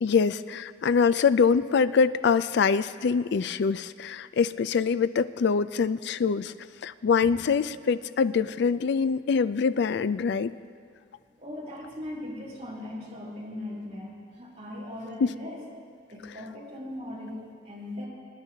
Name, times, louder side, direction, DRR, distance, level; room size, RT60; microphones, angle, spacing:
voice 1, 0.0-6.5 6.8-10.5 15.2-15.3, left 5 dB, 60° left, 14 dB, 0.4 m, -24 dB
voice 2, 11.4-15.6 16.1-18.1, left 1 dB, 35° right, -6 dB, 3.6 m, -39 dB
25.0 x 10.5 x 2.8 m, 2.2 s
head